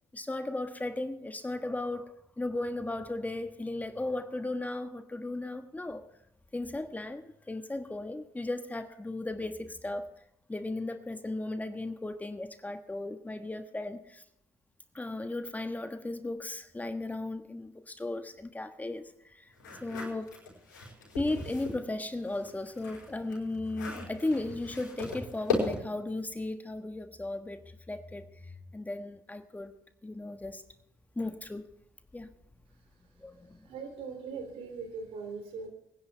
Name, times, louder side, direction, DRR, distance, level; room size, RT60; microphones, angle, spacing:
voice 1, 0.1-6.0 6.5-10.1 10.5-14.2 14.9-19.5 19.8-20.4 21.2-29.8 30.0-30.6 31.1-31.7 32.1-32.3 33.2-33.6, left 2 dB, 15° left, 8 dB, 1.4 m, -36 dB
sound 1, 19.6-21.8 22.2-26.0, left 4 dB, 90° left, 4.9 m, -36 dB
voice 2, 33.6-35.7, right 5 dB, 70° right, 4 dB, 3.2 m, -40 dB
22.5 x 10.5 x 3.5 m, 0.81 s
hypercardioid pair, 55°, 10 cm